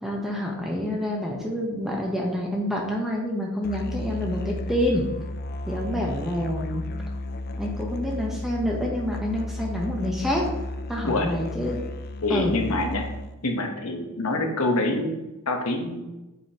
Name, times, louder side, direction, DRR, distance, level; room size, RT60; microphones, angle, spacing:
voice 1, 0.0-5.0 5.7-6.8 7.6-10.5 10.9-11.8 12.3-12.5, left 1 dB, ahead, -2 dB, 0.9 m, -27 dB
Musical instrument, 3.6-13.4, left 1 dB, 45° left, 0.4 m, -33 dB
voice 2, 11.0-11.4 12.2-13.2 13.4-16.0, left 2 dB, 75° left, 3 dB, 1.0 m, -26 dB
7.9 x 5.0 x 2.9 m, 1.0 s
head